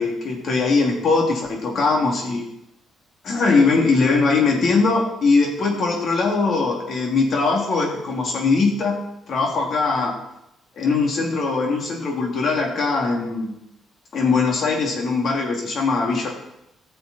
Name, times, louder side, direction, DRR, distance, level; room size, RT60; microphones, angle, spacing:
voice 1, 0.0-2.4 3.2-9.0 9.3-10.1 10.8-13.5 14.1-16.3, left 4 dB, 55° left, 1 dB, 2.8 m, -21 dB
14.0 x 6.8 x 4.3 m, 0.85 s
cardioid pair, 90°, 0 cm